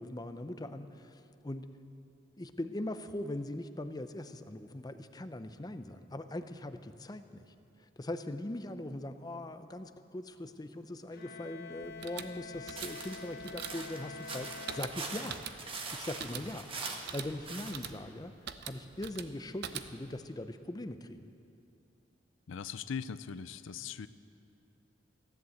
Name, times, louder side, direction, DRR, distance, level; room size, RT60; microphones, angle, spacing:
voice 1, 0.0-1.7 2.4-7.4 7.8-15.4 15.9-18.3 18.6-21.3, left 1 dB, 20° left, 9 dB, 0.6 m, -41 dB
Bowed string instrument, 11.1-15.6, left 4 dB, 55° left, 1.2 m, -47 dB
sound 1, 11.8-20.2, right 8 dB, 60° right, 0.7 m, -45 dB
sound 2, 12.7-17.7, right 3 dB, 30° right, 1.3 m, -42 dB
voice 2, 22.5-24.1, left 6 dB, 90° left, 14 dB, 0.5 m, -40 dB
15.5 x 11.0 x 7.8 m, 2.6 s
head